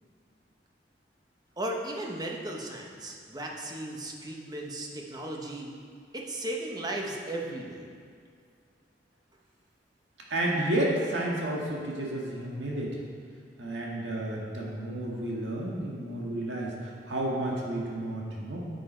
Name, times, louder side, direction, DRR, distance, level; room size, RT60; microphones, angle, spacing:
voice 1, 1.6-5.7 6.1-7.9, right 1 dB, 20° right, 0 dB, 1.0 m, -36 dB
voice 2, 10.3-13.0 13.6-18.6, right 1 dB, 85° right, -3 dB, 1.7 m, -31 dB
9.4 x 7.5 x 4.4 m, 2.2 s
head